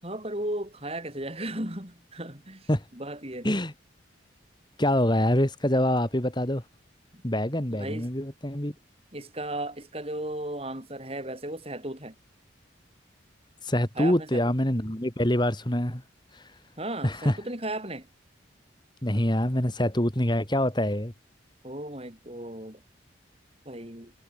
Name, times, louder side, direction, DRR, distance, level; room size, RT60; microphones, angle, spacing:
voice 1, 0.0-3.6 7.1-7.2 7.8-8.1 9.1-12.2 14.0-14.4 16.8-18.1 21.6-22.8 23.7-24.1, right 1 dB, 30° right, 6.9 m, -35 dB
voice 2, 4.8-6.6 7.2-8.7 13.6-16.0 16.3-16.5 17.0-17.4 19.0-21.1, left 1 dB, 25° left, 3.1 m, -25 dB
head